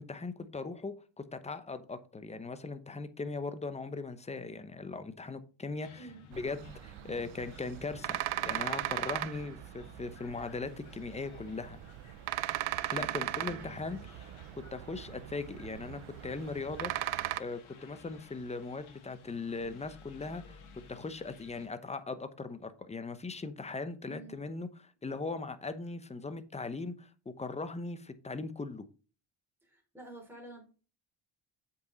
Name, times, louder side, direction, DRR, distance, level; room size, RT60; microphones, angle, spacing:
voice 1, 0.0-11.8 12.9-14.3 14.6-16.9 17.4-20.6 20.9-28.8, left 3 dB, 15° left, 0.8 m, -39 dB
sound 1, 5.8-21.7, left 4 dB, 75° left, 2.2 m, -56 dB
sound 2, 6.3-17.4, right 16 dB, 75° right, 0.6 m, -38 dB
voice 2, 13.0-14.1 24.0-24.4 29.6-30.6, right 3 dB, 5° right, 3.9 m, -50 dB
7.9 x 5.5 x 4.0 m
cardioid pair, 105°, 48 cm